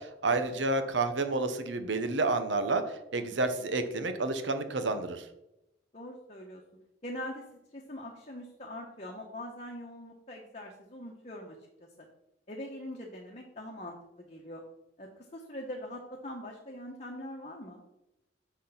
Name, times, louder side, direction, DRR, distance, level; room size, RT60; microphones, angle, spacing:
voice 1, 0.0-2.8 3.1-5.2, right 3 dB, 75° right, 9 dB, 0.9 m, -30 dB
voice 2, 5.9-6.6 7.0-7.4 7.7-12.1 12.5-14.6 15.0-17.8, left 1 dB, 35° left, 0 dB, 1.0 m, -43 dB
6.5 x 6.2 x 5.6 m, 0.89 s
head